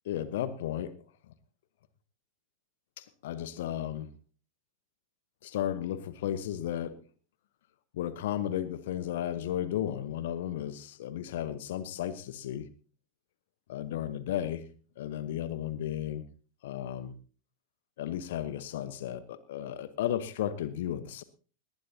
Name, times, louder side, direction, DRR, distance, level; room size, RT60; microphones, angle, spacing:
voice 1, 0.0-0.9 1.3-1.4 3.0-4.1 5.4-7.0 7.9-12.7 13.7-14.7 15.0-16.3 16.6-17.1 18.0-21.2, left 11 dB, 55° left, 15 dB, 1.1 m, -34 dB
19.5 x 19.0 x 2.8 m, 0.39 s
figure-of-eight pair, 90°, 0 cm